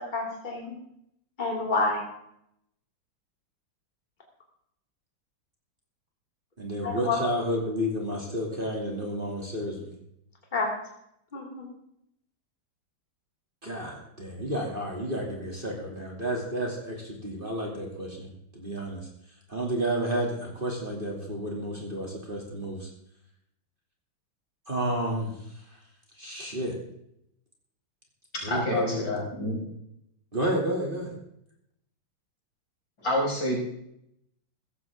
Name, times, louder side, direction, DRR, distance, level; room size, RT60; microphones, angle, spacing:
voice 1, 0.1-0.7 1.4-2.0 6.8-7.2 10.5-10.7 11.3-11.7, left 3 dB, 25° left, -1 dB, 2.9 m, -28 dB
voice 2, 6.6-10.0 13.6-19.1 19.5-22.9 24.7-25.8 26.2-26.8 28.4-29.1 30.3-31.1, equal, 25° right, -1 dB, 2.8 m, -31 dB
voice 3, 28.3-29.7 33.0-33.6, left 1 dB, 70° left, -3 dB, 6.2 m, -28 dB
17.0 x 14.0 x 3.7 m, 0.76 s
omnidirectional pair, 2.1 m